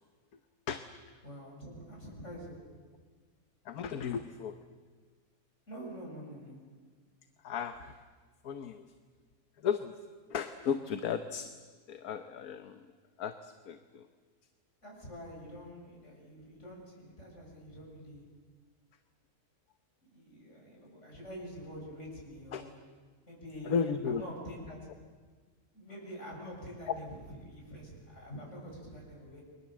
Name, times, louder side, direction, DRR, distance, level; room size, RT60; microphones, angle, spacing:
voice 1, 1.2-2.6 5.7-6.6 14.8-18.2 20.1-22.8 23.3-23.8 24.0-24.9 25.7-29.4, equal, 50° left, -1 dB, 7.8 m, -46 dB
voice 2, 3.6-4.8 7.4-8.0 8.4-8.9 9.6-9.9 10.3-11.5 11.9-12.8 13.2-14.1 22.5-22.6 23.6-24.2 26.9-27.0, left 7 dB, 75° left, 8 dB, 1.5 m, -35 dB
30.0 x 23.0 x 7.6 m, 1.5 s
omnidirectional pair, 1.6 m